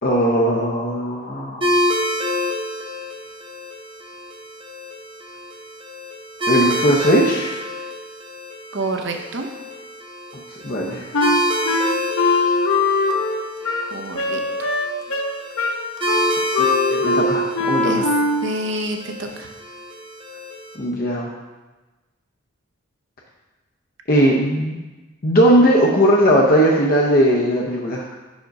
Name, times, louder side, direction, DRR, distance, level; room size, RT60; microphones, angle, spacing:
voice 1, 0.0-1.8 6.5-7.6 10.6-11.1 16.6-18.1 20.8-21.3 24.1-24.8 25.2-28.0, equal, 40° left, -2 dB, 0.6 m, -18 dB
sound 1, 1.6-20.8, equal, 25° right, 0.8 m, -28 dB
voice 2, 8.7-9.5 13.9-14.7 17.8-18.1 18.4-19.5, right 1 dB, 55° right, 4 dB, 0.7 m, -28 dB
Wind instrument woodwind instrument, 11.1-18.6, left 2 dB, 80° left, 0.7 m, -21 dB
5.1 x 4.9 x 5.2 m, 1.2 s
head